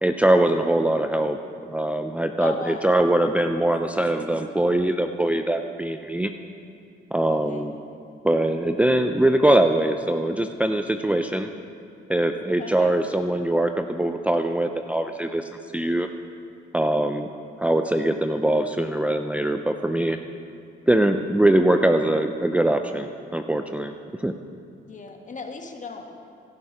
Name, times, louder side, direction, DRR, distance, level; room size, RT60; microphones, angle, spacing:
voice 1, 0.0-1.4 1.6-6.3 7.1-7.7 8.2-11.5 12.1-15.4 15.7-16.1 16.7-17.3 17.6-20.2 20.9-23.9 24.2-24.3, right 1 dB, 5° right, 6 dB, 0.5 m, -22 dB
voice 2, 2.4-3.0 7.3-7.7 12.6-13.0 24.9-26.0, left 4 dB, 40° left, 3 dB, 1.6 m, -37 dB
17.0 x 11.0 x 4.9 m, 2.5 s
cardioid pair, 90°, 20 cm